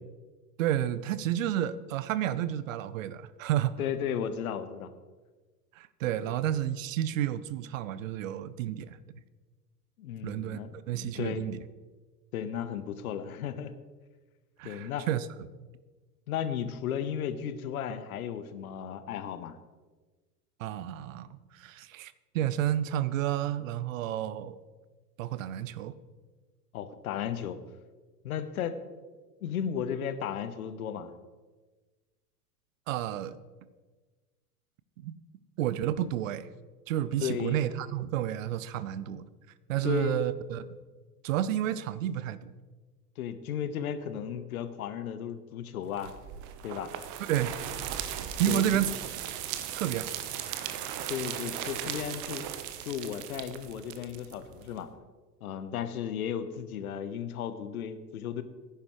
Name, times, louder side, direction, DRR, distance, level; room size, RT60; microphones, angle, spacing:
voice 1, 0.6-3.8 5.7-9.0 10.2-10.6 10.9-11.6 14.6-15.3 20.6-24.6 25.2-26.0 32.9-33.4 35.0-35.1 35.6-36.5 36.9-39.3 39.7-40.7 41.2-42.5 47.3-47.6 48.4-49.0 49.7-50.2, right 11 dB, 55° right, 16 dB, 0.7 m, -31 dB
voice 2, 3.8-4.9 6.3-6.4 10.0-11.5 12.3-13.7 14.6-15.1 16.3-19.6 26.7-27.6 28.2-28.8 29.4-31.1 37.2-37.6 39.8-40.3 43.2-46.1 46.6-46.9 48.5-48.8 51.1-52.5 52.8-54.9 55.4-58.4, left 8 dB, 60° left, 11 dB, 1.1 m, -34 dB
sound 1, 46.0-54.8, right 10 dB, 40° right, 1.1 m, -37 dB
17.0 x 10.0 x 3.2 m, 1.3 s
figure-of-eight pair, 85°, 48 cm